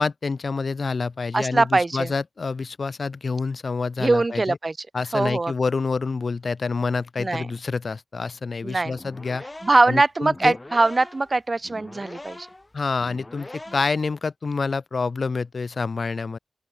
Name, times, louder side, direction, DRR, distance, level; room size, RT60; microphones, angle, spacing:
voice 1, 0.0-4.6 4.9-9.4 9.9-10.6 12.7-16.4, left 4 dB, 70° left, 1.3 m, -27 dB
voice 2, 1.3-2.1 4.0-4.9 5.1-5.5 7.2-7.5 8.6-9.0 9.6-12.5, right 3 dB, 45° right, 1.5 m, -22 dB
sound 1, 8.9-14.1, left 2 dB, 30° left, 2.6 m, -42 dB
open air
cardioid pair, 45°, 0 cm